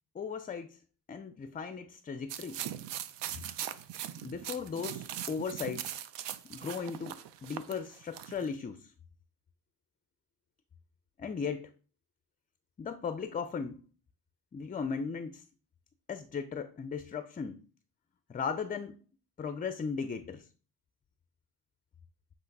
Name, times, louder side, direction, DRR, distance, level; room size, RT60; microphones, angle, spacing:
voice 1, 0.1-0.8 1.1-2.6 4.2-6.0 6.4-8.9 11.2-11.7 12.8-13.8 14.5-15.4 16.1-17.6 18.3-19.0 19.4-20.5, left 5 dB, 25° left, 0.3 m, -37 dB
sound 1, 2.3-8.5, right 11 dB, 90° right, 0.6 m, -40 dB
8.1 x 3.0 x 5.2 m
cardioid pair, 120°, 41 cm